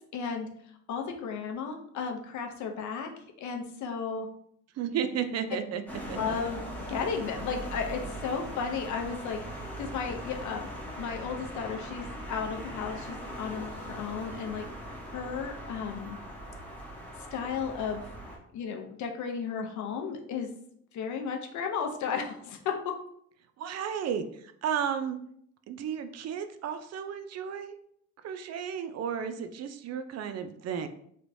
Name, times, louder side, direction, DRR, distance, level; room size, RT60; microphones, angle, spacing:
voice 1, 0.1-0.5 0.9-3.1 3.4-4.3 6.1-6.6 6.9-14.7 15.1-16.2 17.3-18.1 18.5-20.5 20.9-22.9, left 6 dB, 70° left, 4 dB, 0.6 m, -34 dB
voice 2, 4.8-5.8 6.1-6.4 23.6-25.2 25.7-27.7 28.2-30.9, right 8 dB, 60° right, 9 dB, 0.4 m, -33 dB
sound 1, 5.9-18.4, equal, 5° left, 0.9 m, -40 dB
3.3 x 3.0 x 2.6 m, 0.67 s
cardioid pair, 90°, 30 cm